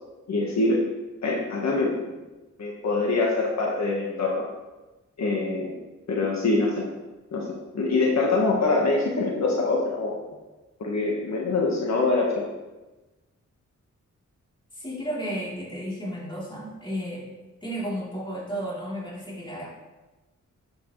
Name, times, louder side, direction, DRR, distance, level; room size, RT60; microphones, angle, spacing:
voice 1, 0.3-0.8 1.2-1.9 2.6-4.5 5.2-5.7 6.1-6.9 7.3-10.2 10.8-12.4, left 3 dB, 65° left, -2 dB, 1.4 m, -24 dB
voice 2, 14.7-17.3 17.6-19.7, equal, 15° left, -6 dB, 3.3 m, -33 dB
11.5 x 8.1 x 3.2 m, 1.1 s
wide cardioid pair, 135°, 30 cm